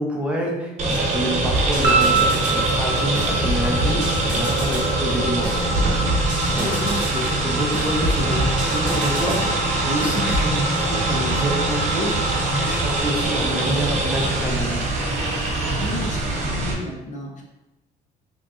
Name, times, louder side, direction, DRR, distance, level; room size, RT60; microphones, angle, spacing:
voice 1, 0.0-5.6 6.5-14.9, right 1 dB, 5° right, -2 dB, 0.7 m, -27 dB
sound 1, 0.8-16.7, right 2 dB, 45° right, 0.8 m, -23 dB
sound 2, 1.4-2.6 3.1-4.9 5.4-7.2 7.7-9.5 10.0-10.5, equal, 25° right, 1.0 m, -27 dB
sound 3, 1.8-14.1, right 2 dB, 75° right, 0.7 m, -29 dB
voice 2, 6.5-7.1 15.8-17.4, left 3 dB, 45° left, 0 dB, 0.7 m, -32 dB
3.6 x 2.9 x 2.4 m, 0.98 s
cardioid pair, 110°, 17 cm